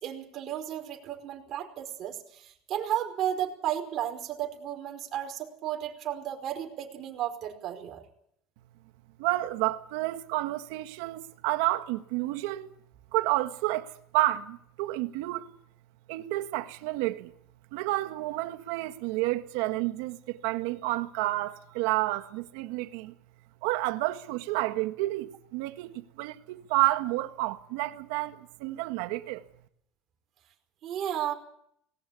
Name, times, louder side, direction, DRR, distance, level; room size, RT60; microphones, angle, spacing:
voice 1, 0.0-8.0 30.8-31.3, right 10 dB, 40° right, 4.9 m, -33 dB
voice 2, 9.2-12.7 13.1-15.5 16.1-17.3 17.7-23.1 23.6-29.4, right 18 dB, 75° right, 1.6 m, -30 dB
19.5 x 18.0 x 8.4 m
cardioid pair, 145°, 0 cm